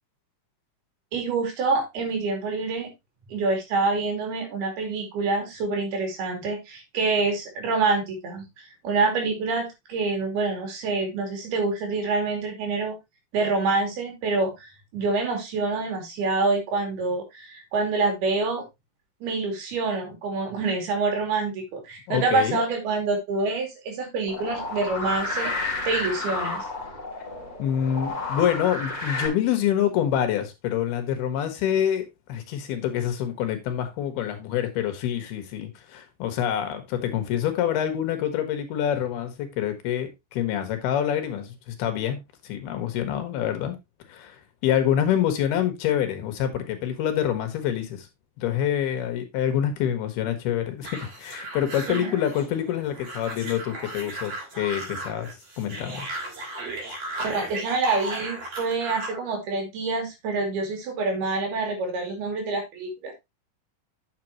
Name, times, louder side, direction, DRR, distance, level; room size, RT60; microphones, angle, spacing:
voice 1, 1.1-2.9 3.3-13.0 13.3-18.6 19.2-26.6 51.9-52.1 57.2-63.1, right 3 dB, 75° right, 4.6 m, -26 dB
voice 2, 22.1-22.6 27.6-43.8 44.1-44.4 44.6-48.1 48.4-50.9 51.2-55.3 55.6-56.1, left 10 dB, 80° left, 3.4 m, -26 dB
sound 1, 24.3-29.3, left 3 dB, 15° left, 2.2 m, -31 dB
sound 2, 50.8-59.2, right 2 dB, 40° right, 3.9 m, -36 dB
9.4 x 7.2 x 3.0 m
omnidirectional pair, 4.5 m